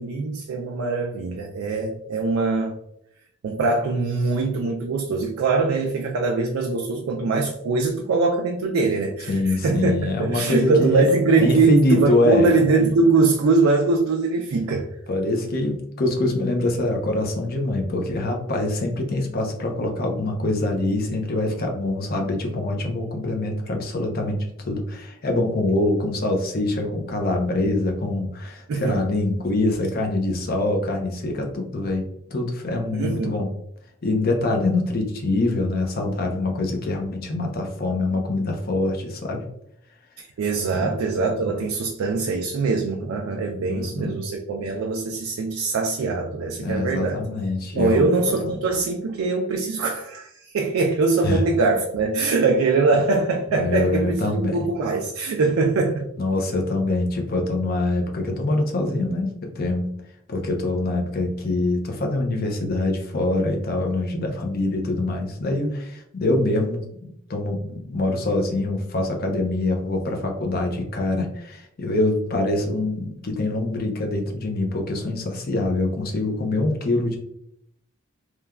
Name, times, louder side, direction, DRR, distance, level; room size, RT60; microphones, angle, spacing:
voice 1, 0.0-2.7 3.4-14.9 28.7-29.0 32.9-33.4 40.2-47.2 47.7-56.1, right 3 dB, 85° right, 1 dB, 0.3 m, -22 dB
voice 2, 9.3-11.1 11.3-12.5 15.1-24.4 24.6-32.0 32.3-33.5 34.0-39.4 40.7-41.0 41.5-41.6 43.7-44.1 46.6-48.1 48.4-48.6 51.2-51.4 53.5-54.7 56.2-59.9 60.3-77.2, left 2 dB, 45° left, 2 dB, 0.5 m, -24 dB
3.1 x 2.2 x 2.3 m, 0.74 s
head